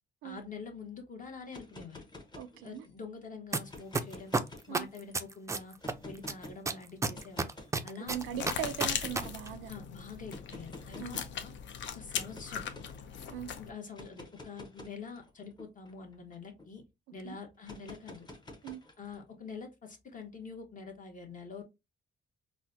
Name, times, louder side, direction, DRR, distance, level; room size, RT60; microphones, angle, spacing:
voice 1, 0.2-2.1 2.6-4.3 4.7-5.8 6.0-7.5 7.8-8.6 9.7-11.5 11.9-12.6 13.6-16.8 17.1-18.3 19.0-21.6, left 5 dB, 40° left, 1.1 m, -46 dB
sound 1, 1.4-3.0 3.6-5.1 5.8-6.6 7.1-7.7 8.4-9.5 10.3-11.4 12.1-13.0 13.8-16.7 17.6-19.2, left 2 dB, 20° left, 0.9 m, -49 dB
voice 2, 2.4-2.8 4.7-4.9 8.0-9.7 11.0-11.2 13.3-13.5 17.2-17.4 18.6-18.8, right 10 dB, 90° right, 0.4 m, -39 dB
sound 2, 3.5-3.6 3.9-5.9 6.3-9.2 9.5-9.6, right 3 dB, 15° right, 0.4 m, -30 dB
sound 3, 8.1-13.7, left 7 dB, 70° left, 0.6 m, -39 dB
4.1 x 2.2 x 2.6 m
cardioid pair, 90°, 20 cm